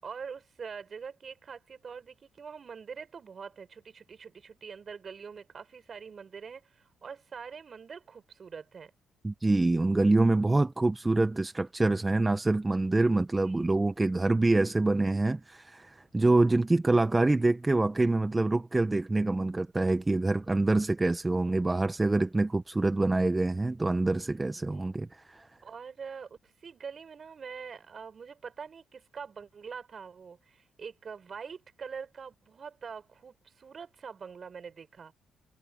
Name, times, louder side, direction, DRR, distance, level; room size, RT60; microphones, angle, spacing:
voice 1, 0.0-8.9 13.4-13.6 24.5-24.9 25.6-35.1, right 6 dB, 45° right, 5.5 m, -44 dB
voice 2, 9.2-25.5, right 2 dB, 15° right, 0.9 m, -26 dB
cardioid pair, 90°, 0 cm